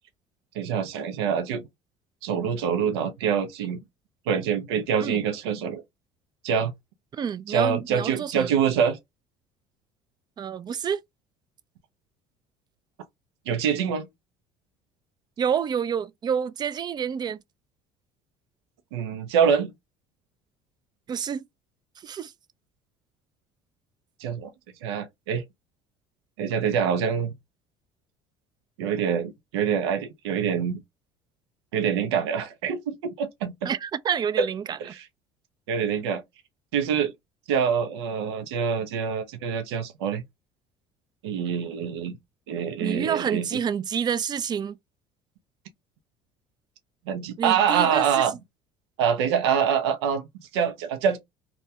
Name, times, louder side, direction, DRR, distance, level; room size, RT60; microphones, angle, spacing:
voice 1, 0.5-1.6 2.2-3.8 4.3-5.8 6.4-6.7 7.5-9.0 13.5-14.1 18.9-19.7 24.2-24.5 24.8-25.4 26.4-27.3 28.8-30.8 31.7-33.7 34.4-34.5 34.8-35.1 35.7-36.2 36.7-37.1 37.5-40.2 41.2-42.2 42.5-43.5 47.1-48.3 49.0-51.2, right 7 dB, 85° right, 0.5 m, -25 dB
voice 2, 7.1-8.5 10.4-11.0 15.4-17.4 21.1-21.4 22.0-22.3 33.7-34.8 42.8-44.8 47.4-48.2, right 7 dB, 30° right, 0.3 m, -28 dB
2.2 x 2.2 x 2.7 m
supercardioid pair, 75°, 13 cm